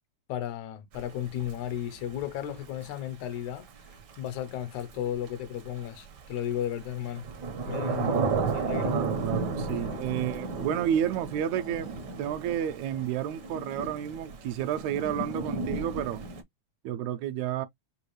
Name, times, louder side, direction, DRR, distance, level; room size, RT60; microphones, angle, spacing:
voice 1, 0.3-3.7 4.2-7.3 7.7-8.2 8.5-9.0 9.7-10.0, left 11 dB, 80° left, 2.0 m, -34 dB
Thunder / Rain, 0.9-16.4, right 4 dB, 65° right, 1.1 m, -34 dB
voice 2, 8.9-16.2 16.8-17.7, right 10 dB, 80° right, 1.7 m, -31 dB
6.8 x 2.3 x 3.0 m
omnidirectional pair, 3.4 m